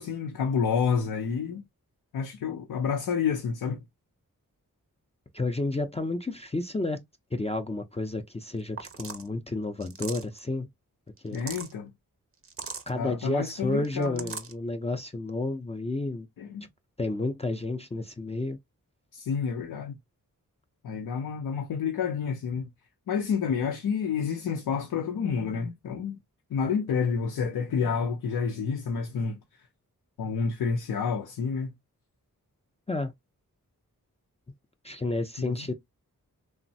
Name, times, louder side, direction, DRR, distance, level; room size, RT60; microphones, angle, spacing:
voice 1, 0.0-1.6 2.1-3.8 11.3-11.9 13.0-14.3 16.4-16.7 19.1-19.9 20.8-22.7 23.1-26.2 26.5-29.4 30.2-31.7 35.4-35.7, left 6 dB, 85° left, 0.5 m, -29 dB
voice 2, 5.3-7.0 7.3-10.7 11.2-11.4 12.9-16.3 17.0-18.6 32.9-33.1 34.8-35.7, left 2 dB, 20° left, 0.4 m, -31 dB
sound 1, 8.5-8.6 8.8-9.3 9.8-10.4 11.2-11.7 12.4-12.9 13.8-14.5, right 5 dB, 40° right, 0.5 m, -39 dB
3.1 x 2.0 x 2.6 m
cardioid pair, 45°, 36 cm